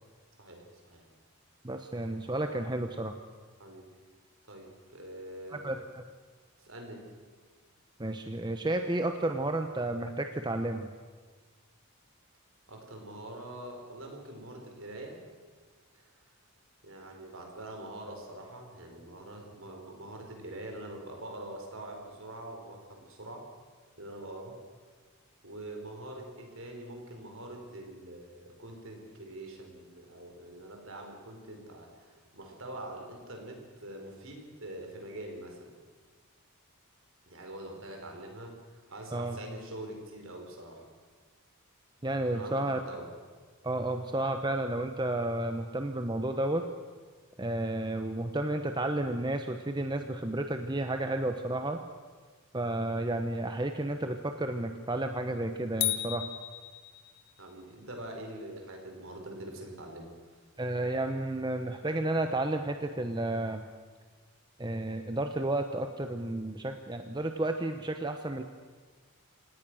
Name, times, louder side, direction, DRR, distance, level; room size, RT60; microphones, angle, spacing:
voice 1, 0.4-1.0 3.6-3.9 4.5-5.7 6.6-7.1 12.7-15.2 15.9-16.1 16.8-23.5 24.0-24.6 25.4-35.8 37.3-40.9 42.3-43.1 57.4-60.4, right 1 dB, 60° right, 2 dB, 4.9 m, -44 dB
voice 2, 1.6-3.1 5.5-6.0 8.0-10.9 39.1-39.4 42.0-42.8 43.6-46.6 47.4-51.8 52.5-56.3 60.6-63.7 64.6-68.4, right 1 dB, 20° right, 6 dB, 0.9 m, -32 dB
sound 1, 55.8-57.4, left 14 dB, 50° left, 1.0 m, -34 dB
28.0 x 17.5 x 6.4 m, 1.5 s
head